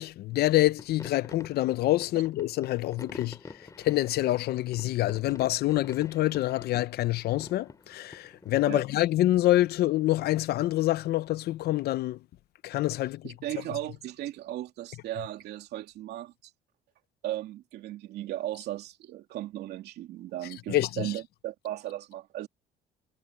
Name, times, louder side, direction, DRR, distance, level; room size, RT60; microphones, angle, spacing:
voice 1, 0.0-12.2 12.6-13.3 20.7-21.1, left 15 dB, 70° left, 0.7 m, -26 dB
sound 1, 0.8-8.6, left 3 dB, 20° left, 3.8 m, -47 dB
voice 2, 13.2-16.5 17.2-22.5, right 14 dB, 75° right, 2.6 m, -36 dB
cardioid pair, 110°, 17 cm